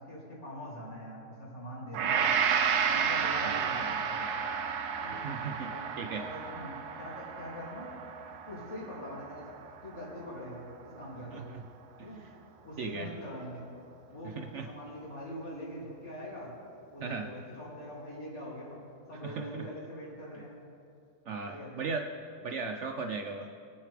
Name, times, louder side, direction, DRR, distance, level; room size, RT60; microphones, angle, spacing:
voice 1, 0.0-2.3 2.8-4.5 5.0-5.3 5.7-7.9 8.5-9.5 9.8-11.4 12.0-12.2 12.6-13.7 14.1-16.5 16.9-18.8 19.1-20.6 21.5-21.9, left 1 dB, 50° left, -6 dB, 3.2 m, -43 dB
Gong, 1.9-10.3 10.7-10.9, right 7 dB, 90° right, 1.3 m, -32 dB
voice 2, 3.4-4.0 5.1-5.7 6.0-6.2 11.3-11.6 12.0-12.1 12.8-13.1 14.4-14.7 17.0-17.3 19.2-19.7 21.3-22.0 22.4-23.5, right 4 dB, 65° right, 5 dB, 0.8 m, -37 dB
20.0 x 8.3 x 3.4 m, 2.5 s
omnidirectional pair, 1.6 m